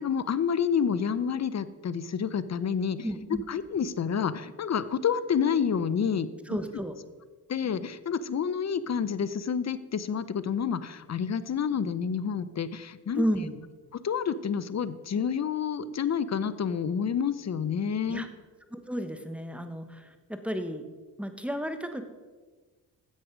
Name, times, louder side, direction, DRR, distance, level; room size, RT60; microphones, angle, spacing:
voice 1, 0.0-3.1 3.5-6.6 7.5-13.2 13.9-18.3, left 7 dB, 40° left, 15 dB, 0.7 m, -29 dB
voice 2, 3.0-3.4 6.5-7.0 13.1-13.6 18.1-18.3 18.7-20.8 21.2-22.0, equal, 5° right, 8 dB, 1.2 m, -32 dB
10.5 x 7.7 x 5.1 m, 1.4 s
supercardioid pair, 55°, 40 cm